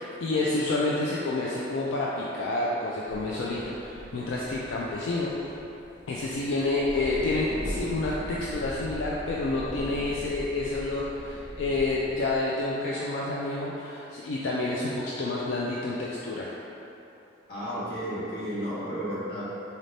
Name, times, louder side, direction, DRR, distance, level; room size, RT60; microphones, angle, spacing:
voice 1, 0.0-5.3 6.1-16.6, left 2 dB, 85° left, -5 dB, 0.4 m, -29 dB
sound 1, 3.1-12.4, equal, 15° right, 0.7 m, -40 dB
voice 2, 17.5-19.4, equal, 60° left, -10 dB, 1.2 m, -32 dB
4.1 x 2.7 x 3.2 m, 2.9 s
head